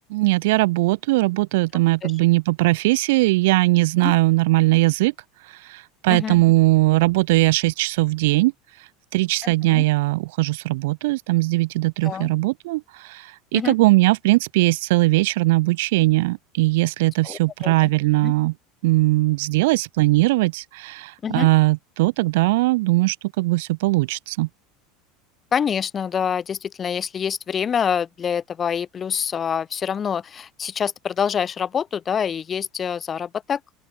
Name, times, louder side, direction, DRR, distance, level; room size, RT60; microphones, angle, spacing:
voice 1, 0.1-5.1 5.7-8.5 9.1-18.5 18.8-24.5, right 21 dB, 75° right, 3.3 m, -20 dB
voice 2, 6.1-6.4 9.4-9.8 12.0-12.3 13.5-13.7 17.2-17.9 18.2-18.3 21.2-21.5 25.5-33.6, left 7 dB, 25° left, 2.0 m, -26 dB
open air
supercardioid pair, 145°, 0 cm